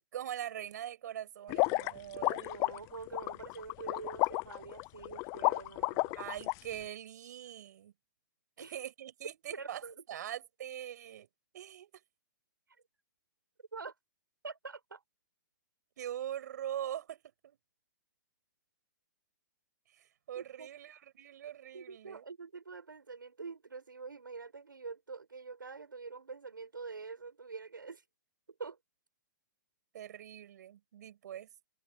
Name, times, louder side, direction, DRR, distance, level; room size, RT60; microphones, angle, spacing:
voice 1, 0.0-2.5 6.1-7.9 8.7-9.8 10.1-11.3 11.5-12.0 16.0-17.6 19.9-22.2 29.9-31.5, right 11 dB, 60° right, 6.4 m, -42 dB
sound 1, 1.5-6.5, left 26 dB, 30° left, 0.6 m, -32 dB
voice 2, 2.1-6.2 8.6-8.8 9.5-10.0 13.7-13.9 14.4-15.0 20.3-20.7 21.7-28.0 28.5-28.8, right 4 dB, 90° right, 6.9 m, -46 dB
hypercardioid pair, 125°, 11 cm